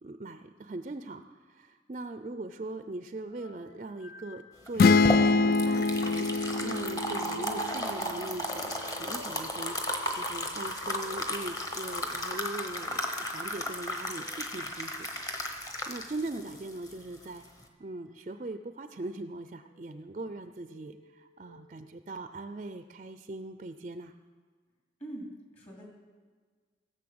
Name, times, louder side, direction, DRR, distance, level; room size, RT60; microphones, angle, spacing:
voice 1, 0.0-13.0 13.3-15.6 15.9-17.4 17.8-24.1, right 2 dB, 40° right, 9 dB, 0.4 m, -40 dB
sound 1, 3.3-13.2 14.0-14.3 16.3-16.6 17.4-17.9 18.4-18.8 19.5-20.0 20.5-21.6, equal, 80° left, 5.3 m, -54 dB
sound 2, 4.7-17.6, left 1 dB, 20° left, 1.2 m, -35 dB
sound 3, 4.8-8.5, left 4 dB, 55° left, 0.3 m, -25 dB
voice 2, 25.0-25.9, right 1 dB, 35° left, -2 dB, 2.9 m, -43 dB
17.5 x 6.6 x 7.8 m, 1.5 s
head